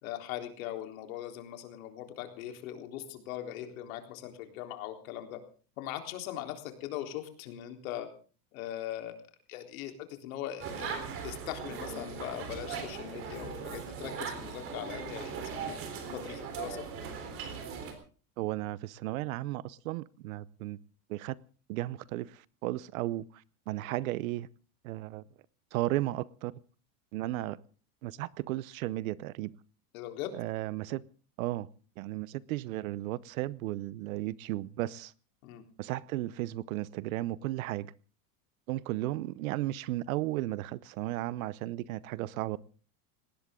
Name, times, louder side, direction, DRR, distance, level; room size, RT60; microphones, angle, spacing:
voice 1, 0.0-5.4 5.8-8.1 8.5-9.2 9.5-9.9 10.2-15.8 16.1-16.9 29.9-30.3 35.4-35.6, left 12 dB, 60° left, 3.8 m, -40 dB
sound 1, 10.6-17.9, right 6 dB, 30° right, 3.8 m, -39 dB
voice 2, 18.4-20.8 21.1-21.4 21.7-24.5 24.8-25.2 25.7-26.5 27.1-27.6 28.0-29.5 30.4-31.0 31.4-31.7 32.0-35.1 35.8-37.9 38.7-42.6, right 16 dB, 60° right, 0.9 m, -34 dB
20.0 x 18.5 x 3.8 m
supercardioid pair, 175°, 45 cm